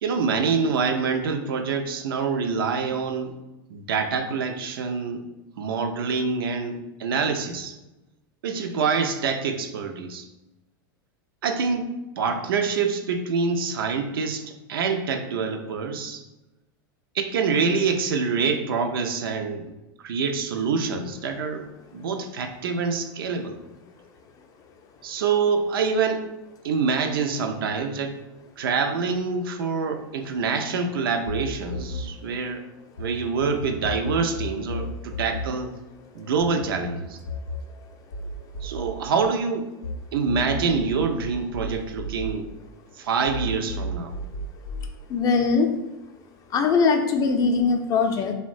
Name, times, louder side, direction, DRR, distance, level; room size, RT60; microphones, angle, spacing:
voice 1, 0.0-3.3 3.7-5.3 5.6-7.7 8.4-10.3 11.4-16.2 17.1-19.7 20.0-23.6 25.0-26.3 26.6-28.2 28.6-32.6 33.0-35.7 36.1-37.2 38.6-39.7 40.1-42.5 43.0-44.1, right 5 dB, 90° right, 5 dB, 0.4 m, -26 dB
sound 1, 31.3-33.1 33.4-40.0 40.3-42.9 43.3-44.9, left 1 dB, 85° left, 0.5 m, -34 dB
voice 2, 45.1-45.7 46.5-48.3, left 4 dB, 30° left, 5 dB, 0.4 m, -21 dB
2.9 x 2.1 x 2.5 m, 0.99 s
hypercardioid pair, 115°, 12 cm